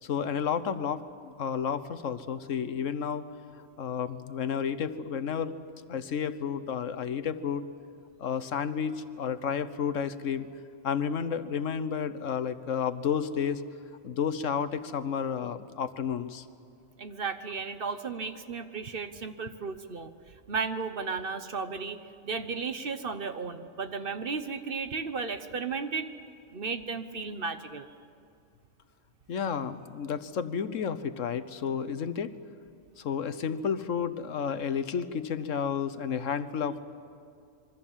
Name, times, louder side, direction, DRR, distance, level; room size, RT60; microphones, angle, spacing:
voice 1, 0.0-3.3 3.8-5.6 5.9-7.6 8.2-10.5 10.8-13.6 14.0-16.4 29.3-32.3 33.0-36.8, left 7 dB, 85° left, 12 dB, 1.3 m, -31 dB
voice 2, 17.0-22.0 22.2-26.1 26.5-27.9, right 5 dB, 50° right, 9 dB, 1.2 m, -34 dB
26.0 x 23.5 x 7.4 m, 2.4 s
omnidirectional pair, 1.3 m